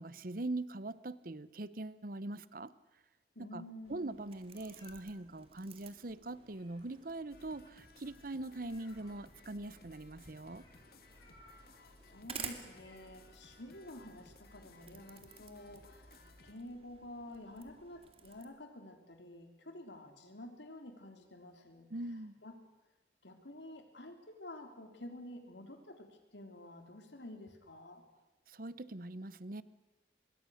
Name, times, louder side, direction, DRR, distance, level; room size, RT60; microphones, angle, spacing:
voice 1, 0.0-2.7 3.5-3.6 3.9-10.6 21.9-22.4 28.5-29.6, right 2 dB, 50° right, 17 dB, 0.9 m, -42 dB
voice 2, 3.4-4.0 11.4-21.9 22.4-22.5 23.2-28.0, left 1 dB, 85° left, 5 dB, 3.6 m, -50 dB
sound 1, 3.8-18.4, right 6 dB, 35° right, 2.4 m, -54 dB
Meow, 4.4-5.2 6.2-7.5 8.5-9.5 10.5-13.7, left 2 dB, 25° left, 6.3 m, -65 dB
sound 2, 7.3-16.5, left 2 dB, 55° left, 2.2 m, -61 dB
25.5 x 22.0 x 6.5 m, 1.2 s
head